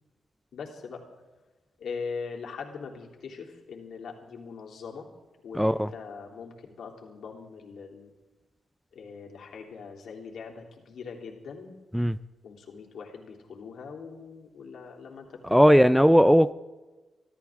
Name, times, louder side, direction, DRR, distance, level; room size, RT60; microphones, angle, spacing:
voice 1, 0.5-1.0 1.8-5.1 5.4-8.1 8.9-11.7 12.4-16.0, left 5 dB, 70° left, 0 dB, 3.3 m, -41 dB
voice 2, 5.5-5.9 11.9-12.2 15.5-16.5, equal, ahead, 14 dB, 0.4 m, -18 dB
25.0 x 14.0 x 3.7 m, 1.2 s
cardioid pair, 115°, 0 cm